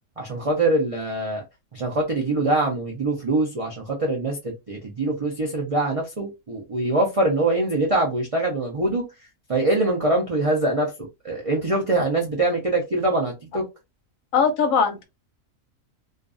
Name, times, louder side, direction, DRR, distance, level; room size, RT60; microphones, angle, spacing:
voice 1, 0.2-1.4 1.7-9.0 9.5-10.9 11.2-13.6, right 2 dB, 60° right, 0.3 m, -23 dB
voice 2, 14.3-15.0, left 6 dB, 70° left, 0.9 m, -20 dB
2.5 x 2.4 x 2.4 m
omnidirectional pair, 1.6 m